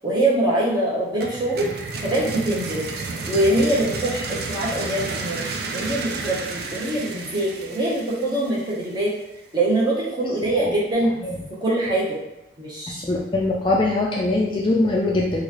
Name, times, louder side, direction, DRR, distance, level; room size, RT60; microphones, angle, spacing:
voice 1, 0.0-1.7 2.0-2.9 3.3-5.4 5.7-9.1 9.5-11.1 11.6-12.2 12.6-13.0, right 1 dB, 25° right, -6 dB, 1.0 m, -23 dB
sound 1, 1.2-9.0, right 3 dB, 55° right, 0.4 m, -32 dB
voice 2, 12.9-15.4, left 2 dB, 25° left, -2 dB, 0.4 m, -22 dB
3.8 x 2.4 x 3.0 m, 0.93 s
head